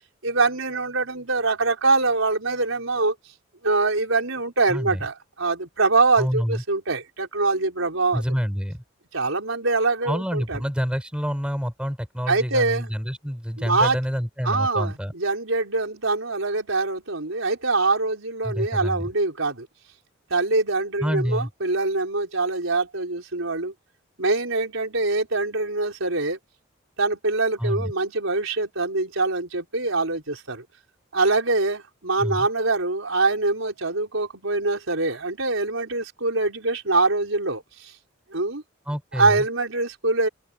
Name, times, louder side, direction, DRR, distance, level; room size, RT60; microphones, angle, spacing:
voice 1, 0.2-3.1 3.6-8.2 9.1-10.6 12.3-12.9 13.6-14.0 14.4-19.7 20.3-23.7 24.2-26.4 27.0-30.6 31.1-37.9 38.3-38.6 39.1-40.3, right 3 dB, 90° right, 4.9 m, -24 dB
voice 2, 4.7-5.0 6.2-6.6 8.1-8.8 10.0-15.1 18.4-19.1 21.0-21.5 27.6-27.9 32.2-32.5 38.9-39.4, equal, 5° right, 4.9 m, -27 dB
open air
head